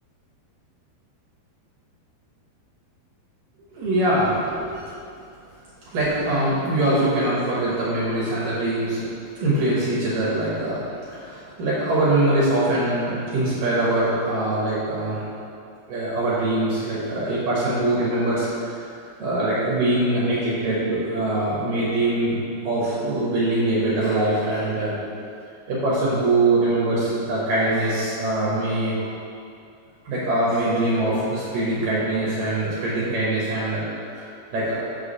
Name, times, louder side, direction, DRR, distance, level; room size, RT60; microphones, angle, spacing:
voice 1, 3.7-4.9 5.8-9.1 9.4-15.2 15.9-18.9 19.2-22.4 22.6-24.9 25.7-29.1 30.0-33.8 34.2-34.3 34.5-34.9, right 1 dB, 65° right, -8 dB, 2.4 m, -23 dB
6.8 x 4.8 x 6.7 m, 2.5 s
omnidirectional pair, 5.4 m